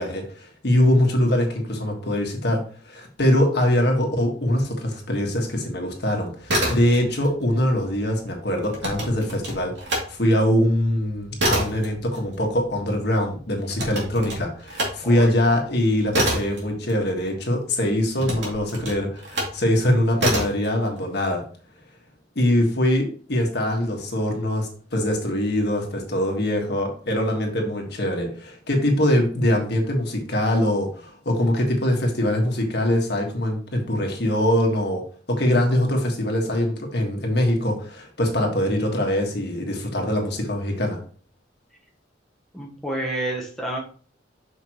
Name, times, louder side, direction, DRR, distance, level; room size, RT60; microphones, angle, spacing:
voice 1, 0.0-21.4 22.3-35.0 35.3-41.0, left 1 dB, 60° left, 1 dB, 1.5 m, -23 dB
sound 1, 6.3-7.3 7.6-10.1 10.5-17.5 18.1-19.6 20.2-20.7, right 1 dB, 70° right, 2.5 m, -27 dB
voice 2, 42.5-43.8, right 1 dB, ahead, -3 dB, 1.2 m, -29 dB
6.3 x 5.1 x 3.0 m, 0.43 s
head